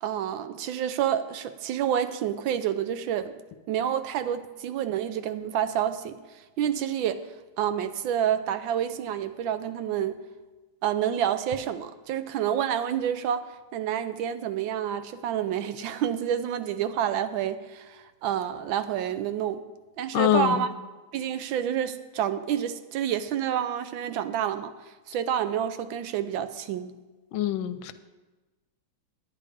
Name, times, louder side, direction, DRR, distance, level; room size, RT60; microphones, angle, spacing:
voice 1, 0.0-3.4 3.7-6.1 6.6-7.2 7.6-10.2 10.8-19.6 20.0-20.7 21.1-24.7 25.1-26.9, right 9 dB, 75° right, 11 dB, 1.3 m, -28 dB
voice 2, 20.1-20.6 27.3-27.9, left 11 dB, 80° left, 11 dB, 1.3 m, -24 dB
10.0 x 9.7 x 5.0 m, 1.2 s
omnidirectional pair, 2.3 m